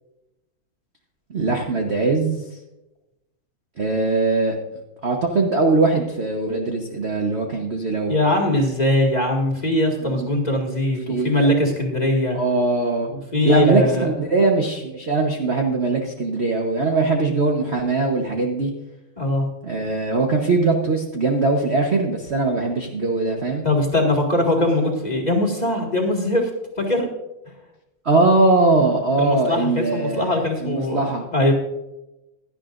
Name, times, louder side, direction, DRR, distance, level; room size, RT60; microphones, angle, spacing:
voice 1, 1.3-2.4 3.8-4.5 5.0-8.2 10.0-10.3 11.1-11.5 12.3-13.1 13.4-18.7 19.6-23.6 28.0-31.3, right 3 dB, 40° right, 1 dB, 1.0 m, -21 dB
voice 2, 8.1-12.4 13.1-14.1 19.2-19.5 23.6-26.5 26.9-27.1 29.2-31.0 31.3-31.5, left 1 dB, 20° left, 0 dB, 1.9 m, -21 dB
16.5 x 11.5 x 2.5 m, 0.95 s
omnidirectional pair, 2.3 m